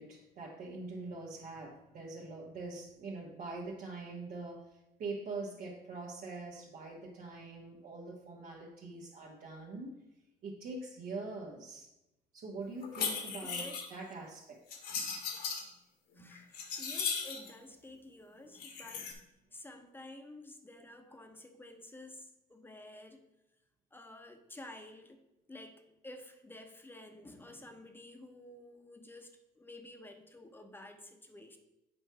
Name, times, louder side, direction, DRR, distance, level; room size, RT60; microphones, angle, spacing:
voice 1, 0.0-10.0 10.4-11.9 12.3-14.8, right 3 dB, 60° right, -4 dB, 1.4 m, -44 dB
sound 1, 12.8-13.9 14.7-15.6 16.2-17.5 18.5-19.1, left 6 dB, 70° left, 1.4 m, -37 dB
voice 2, 13.4-13.8 16.2-19.1 19.5-23.2 23.9-25.2 25.5-31.6, left 1 dB, 10° left, 6 dB, 0.9 m, -51 dB
7.7 x 4.6 x 4.6 m, 0.92 s
cardioid pair, 110°, 17 cm